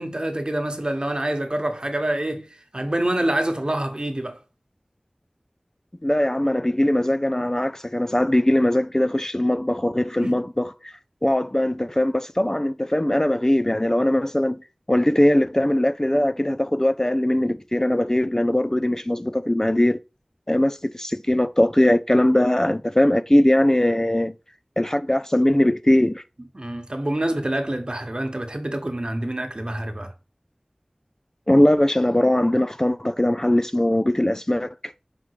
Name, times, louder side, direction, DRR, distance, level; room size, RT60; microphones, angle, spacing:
voice 1, 0.0-2.5 2.7-4.4 10.2-10.4 26.5-30.1, right 1 dB, 40° right, 1.2 m, -26 dB
voice 2, 6.0-14.6 14.9-20.0 20.5-24.4 24.8-26.2 31.5-34.9, left 1 dB, 25° left, 0.4 m, -20 dB
5.9 x 3.6 x 4.8 m
wide cardioid pair, 45°, 2 cm